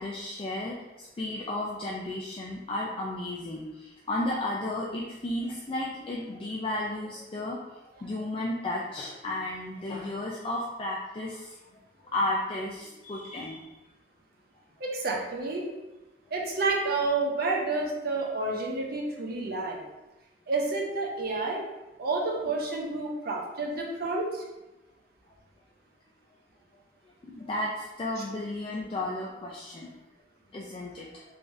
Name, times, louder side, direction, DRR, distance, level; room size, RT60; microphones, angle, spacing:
voice 1, 0.0-7.6 8.0-11.5 12.1-13.7 27.2-29.9 30.5-31.2, left 1 dB, 30° left, -4 dB, 0.4 m, -33 dB
voice 2, 14.8-15.7 16.3-19.8 20.5-21.6 22.0-24.4 28.2-28.3, right 3 dB, 60° right, -1 dB, 0.7 m, -29 dB
3.5 x 3.2 x 2.6 m, 1.0 s
head